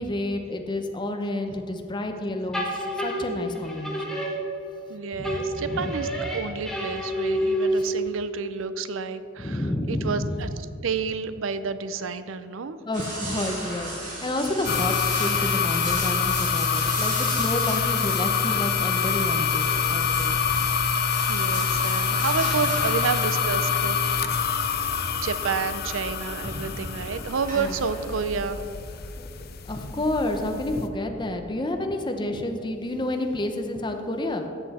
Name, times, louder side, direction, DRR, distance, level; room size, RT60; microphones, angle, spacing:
voice 1, 0.0-4.2 5.2-5.9 7.8-7.9 9.4-10.5 12.8-20.4 24.9-25.1 26.4-26.9 27.6-27.8 29.2-29.3 29.7-34.5, left 1 dB, 25° left, 5 dB, 0.8 m, -30 dB
sound 1, 2.5-4.9 5.2-8.1, equal, ahead, 1.5 m, -28 dB
voice 2, 4.9-10.5 10.8-12.8 20.1-20.2 21.3-24.2 25.2-28.6, right 5 dB, 85° right, 12 dB, 0.5 m, -30 dB
sound 2, 12.9-28.2, right 2 dB, 40° right, 2.5 m, -37 dB
sound 3, 14.6-30.9, left 6 dB, 50° left, 0.6 m, -26 dB
13.5 x 7.9 x 4.2 m, 2.8 s
head